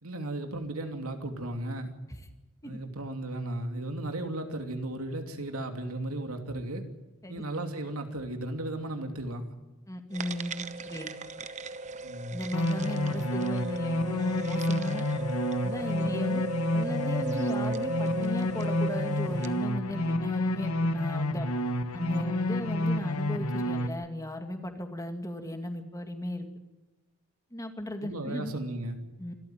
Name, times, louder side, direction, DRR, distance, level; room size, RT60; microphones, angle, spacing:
voice 1, 0.0-1.9 2.6-6.8 7.3-9.5 12.0-12.4 12.9-13.2 28.0-29.0, right 1 dB, 80° right, 5 dB, 2.8 m, -35 dB
voice 2, 9.9-11.1 12.3-15.0 15.6-16.4 16.7-21.5 21.9-26.5 27.5-28.5 29.2-29.3, left 1 dB, 15° left, 6 dB, 2.2 m, -36 dB
sound 1, 10.1-19.7, right 2 dB, 35° right, 0.9 m, -36 dB
sound 2, 12.5-23.9, left 1 dB, 90° left, 1.4 m, -29 dB
26.0 x 13.5 x 9.3 m, 1.1 s
head